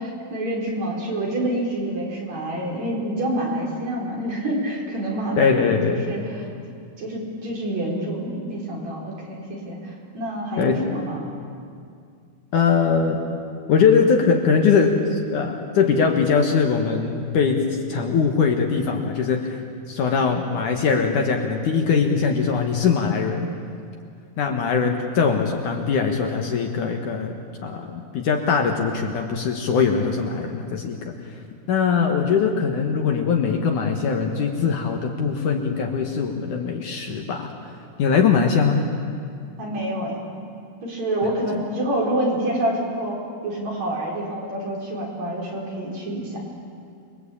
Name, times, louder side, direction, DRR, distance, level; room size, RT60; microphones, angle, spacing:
voice 1, 0.0-6.5 7.0-11.2 39.6-40.2 40.8-46.4, right 1 dB, 45° right, -2 dB, 5.8 m, -27 dB
voice 2, 5.4-6.0 10.6-10.8 12.5-13.2 13.7-19.6 19.9-23.5 24.4-27.3 27.6-31.1 31.7-37.5 38.0-38.8, left 5 dB, 60° left, 3 dB, 2.7 m, -21 dB
29.0 x 22.0 x 8.7 m, 2.3 s
omnidirectional pair, 4.4 m